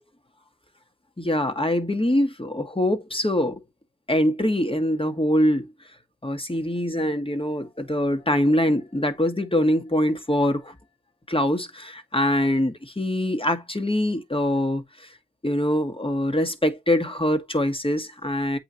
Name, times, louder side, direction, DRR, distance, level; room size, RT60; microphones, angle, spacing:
voice 1, 1.2-3.6 4.1-5.7 6.2-10.8 11.3-15.1 15.4-18.6, left 1 dB, 10° left, 1.7 m, -23 dB
8.0 x 3.0 x 4.0 m
supercardioid pair, 45°, 46 cm